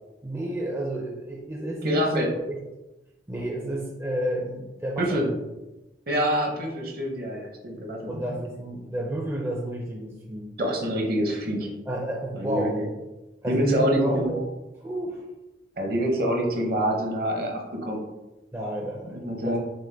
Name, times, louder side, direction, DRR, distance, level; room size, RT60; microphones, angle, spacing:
voice 1, 0.2-2.6 3.3-5.4 8.1-10.5 11.9-12.8 13.4-14.5 14.8-15.2 18.5-19.6, right 1 dB, 15° right, -1 dB, 0.5 m, -31 dB
voice 2, 1.8-2.3 5.0-5.2 6.1-8.2 10.6-11.7 12.3-12.9 13.5-14.3 15.8-18.1 19.1-19.6, equal, 55° right, 1 dB, 0.9 m, -26 dB
6.1 x 2.1 x 3.3 m, 1.0 s
head